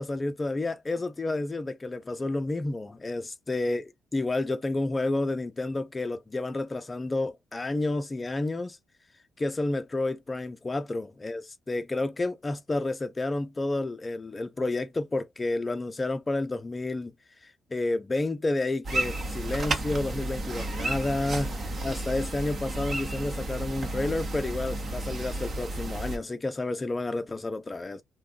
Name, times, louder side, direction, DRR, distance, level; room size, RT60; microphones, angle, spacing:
voice 1, 0.0-8.8 9.4-17.1 17.4-28.0, left 2 dB, 25° left, 0.5 m, -30 dB
sound 1, 18.8-26.2, right 1 dB, 45° right, 0.9 m, -32 dB
2.6 x 2.2 x 3.5 m
cardioid pair, 90°, 0 cm